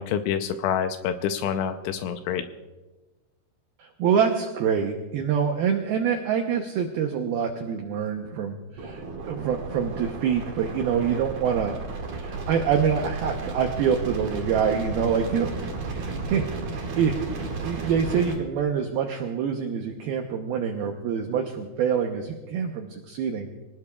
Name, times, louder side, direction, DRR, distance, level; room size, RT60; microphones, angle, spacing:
voice 1, 0.0-2.4, left 8 dB, 80° left, 8 dB, 3.0 m, -27 dB
voice 2, 3.8-11.8 12.1-15.5 15.9-23.5, right 7 dB, 85° right, 4 dB, 2.1 m, -26 dB
sound 1, 8.8-18.4, right 3 dB, 50° right, 3.1 m, -33 dB
24.5 x 18.5 x 2.4 m, 1.2 s
omnidirectional pair, 5.7 m